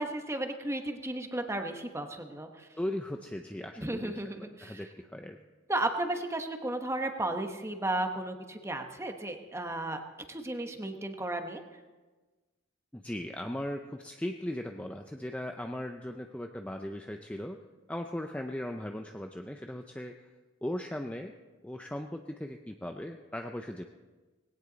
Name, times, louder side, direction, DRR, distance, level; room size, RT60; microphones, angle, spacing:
voice 1, 0.0-2.7 3.8-4.8 5.7-10.0 10.3-11.6, right 1 dB, 15° right, 5 dB, 1.1 m, -34 dB
voice 2, 2.8-4.1 4.6-5.4 12.9-17.6 17.9-20.1 20.6-21.3 21.6-23.9, left 1 dB, 5° left, 4 dB, 0.5 m, -38 dB
19.0 x 17.5 x 4.0 m, 1.3 s
head